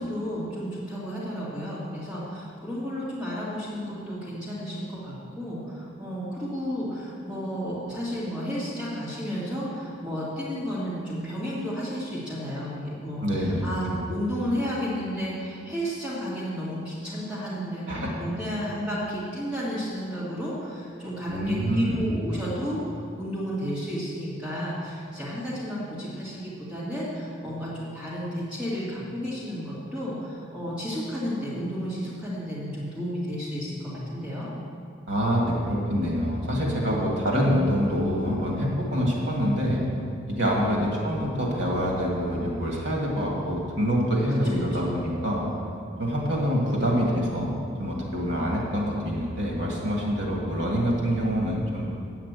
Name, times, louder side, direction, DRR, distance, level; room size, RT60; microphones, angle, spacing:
voice 1, 0.0-34.5 44.4-45.0, equal, 5° right, -9 dB, 2.0 m, -32 dB
voice 2, 13.2-13.6 17.9-18.1 21.3-22.0 35.1-39.8 40.3-45.5 46.0-51.9, equal, 60° right, -3 dB, 1.8 m, -26 dB
9.0 x 5.8 x 8.1 m, 2.3 s
head